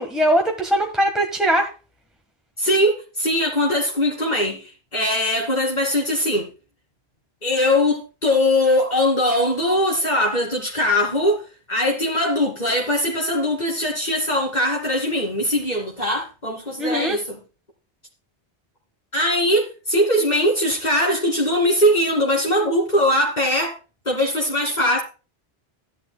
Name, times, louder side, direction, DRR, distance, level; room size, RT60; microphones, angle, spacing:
voice 1, 0.0-1.7 16.8-17.2, right 1 dB, ahead, 1.3 m, -20 dB
voice 2, 2.6-6.5 7.4-17.4 19.1-23.7 24.1-25.0, left 1 dB, 45° left, 2.4 m, -21 dB
14.0 x 11.0 x 2.2 m
omnidirectional pair, 1.1 m